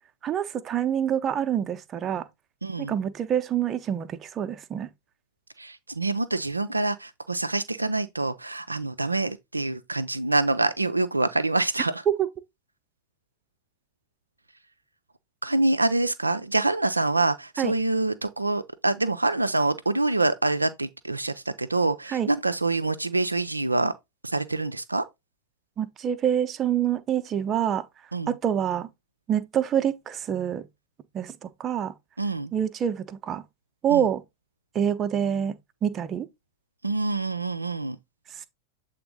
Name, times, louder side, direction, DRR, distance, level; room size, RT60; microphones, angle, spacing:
voice 1, 0.2-2.3 2.8-4.9 12.1-12.2 17.6-17.7 22.1-22.3 25.8-27.8 28.3-28.9 29.3-30.7 31.1-31.9 32.5-33.4 33.8-34.2 34.7-35.5 35.8-36.3, right 9 dB, 25° right, 0.7 m, -26 dB
voice 2, 2.6-2.9 5.6-12.0 15.4-23.9 24.2-25.1 28.1-28.3 32.2-32.5 33.9-34.1 36.8-38.0, right 2 dB, 80° right, 0.4 m, -26 dB
7.8 x 3.6 x 3.7 m
figure-of-eight pair, 90°, 0 cm